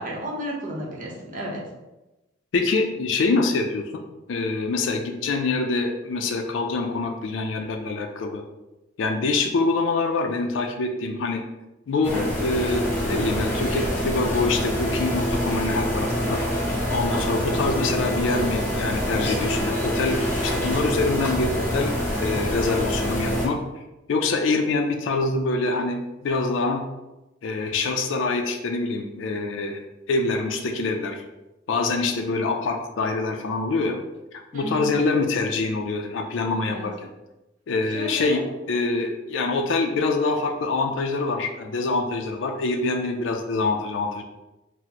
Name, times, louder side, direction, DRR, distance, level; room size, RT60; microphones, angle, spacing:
voice 1, 0.0-1.6 34.5-34.9 36.7-36.9 37.9-38.4, equal, 45° right, -3 dB, 0.8 m, -32 dB
voice 2, 2.5-4.0 4.3-8.4 9.0-11.4 11.9-16.4 16.9-23.6 24.1-26.8 27.4-29.8 30.1-31.2 31.7-34.0 34.3-37.1 37.7-38.4 38.7-44.2, left 3 dB, 70° left, 3 dB, 0.4 m, -25 dB
sound 1, 12.0-23.5, equal, 10° left, 0.8 m, -25 dB
4.0 x 2.0 x 2.9 m, 1.0 s
head